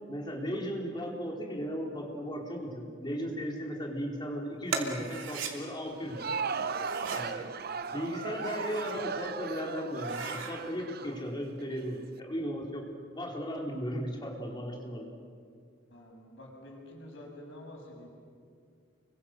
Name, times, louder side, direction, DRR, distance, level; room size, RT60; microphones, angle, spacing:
voice 1, 0.1-6.3 7.1-7.5 7.9-12.8 13.1-15.1, equal, 25° left, 0 dB, 4.2 m, -36 dB
sound 1, 4.7-5.5 6.6-7.3 8.2-9.0 9.4-9.5 9.9-10.5, right 4 dB, 85° right, 3.0 m, -38 dB
Crowd, 5.9-11.8, right 5 dB, 55° right, 0.8 m, -36 dB
voice 2, 15.9-18.1, left 1 dB, 70° left, -1 dB, 7.1 m, -48 dB
30.0 x 24.0 x 6.8 m, 2.2 s
head